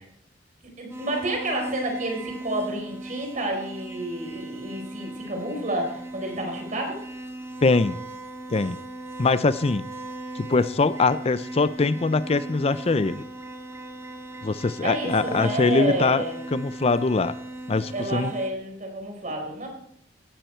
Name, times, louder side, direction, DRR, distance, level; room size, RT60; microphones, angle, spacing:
voice 1, 0.8-7.0 14.8-16.4 17.9-19.7, right 1 dB, 45° right, 2 dB, 4.5 m, -30 dB
sound 1, 0.9-18.5, right 2 dB, 15° right, 2.0 m, -38 dB
voice 2, 7.6-8.0 8.5-8.8 9.2-9.8 10.4-13.2 14.4-16.2 16.5-17.3 17.7-18.3, left 3 dB, 35° left, 15 dB, 0.5 m, -22 dB
17.0 x 13.5 x 4.5 m, 0.71 s
head